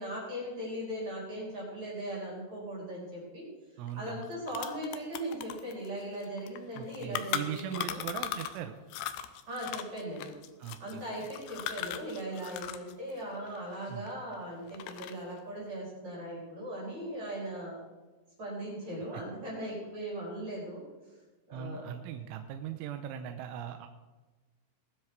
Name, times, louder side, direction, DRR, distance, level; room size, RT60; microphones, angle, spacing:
voice 1, 0.0-3.5 3.9-8.0 9.5-10.3 10.8-17.8 18.4-20.8 21.5-21.9, right 1 dB, 35° right, -5 dB, 5.5 m, -39 dB
voice 2, 3.8-4.3 6.7-8.7 10.6-11.0 13.9-14.1 21.5-23.9, right 9 dB, 85° right, 6 dB, 3.2 m, -39 dB
sound 1, 3.9-4.0 4.2-8.6 8.9-12.9 13.2-14.3 14.7-15.3, left 11 dB, 80° left, 2.3 m, -38 dB
20.5 x 10.0 x 4.7 m, 1.2 s
omnidirectional pair, 5.7 m